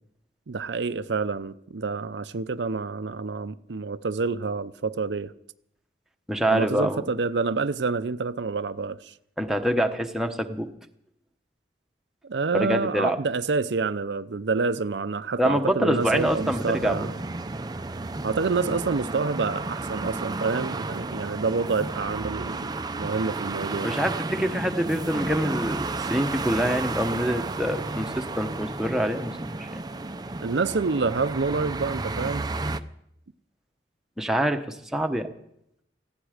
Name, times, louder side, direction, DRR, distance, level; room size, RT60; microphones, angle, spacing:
voice 1, 0.5-5.3 6.5-9.1 12.3-17.1 18.2-24.0 30.4-32.4, right 4 dB, 75° right, 0.6 m, -28 dB
voice 2, 6.3-7.0 9.4-10.7 12.5-13.2 15.4-17.0 23.8-29.7 34.2-35.3, equal, 5° right, 0.9 m, -26 dB
sound 1, 16.0-32.8, right 3 dB, 25° right, 0.5 m, -32 dB
18.0 x 15.0 x 5.0 m
head